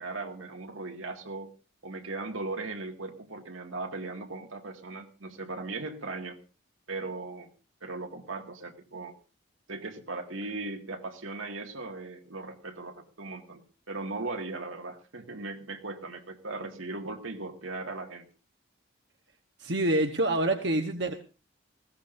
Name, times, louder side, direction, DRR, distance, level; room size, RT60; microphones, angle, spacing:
voice 1, 0.0-1.5 1.8-6.4 6.9-7.5 7.8-9.1 9.7-18.3, right 3 dB, 85° right, 4 dB, 2.0 m, -38 dB
voice 2, 19.6-21.1, right 1 dB, 60° right, 4 dB, 1.1 m, -26 dB
20.0 x 17.0 x 2.6 m, 0.33 s
head